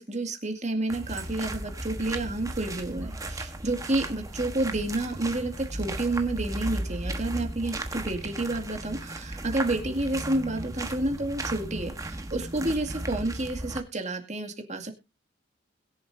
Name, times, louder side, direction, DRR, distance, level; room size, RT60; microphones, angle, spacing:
voice 1, 0.0-14.9, right 2 dB, 35° right, 4 dB, 2.1 m, -30 dB
sound 1, 0.9-13.8, right 1 dB, 15° right, 1.2 m, -35 dB
21.5 x 7.3 x 2.6 m, 0.25 s
head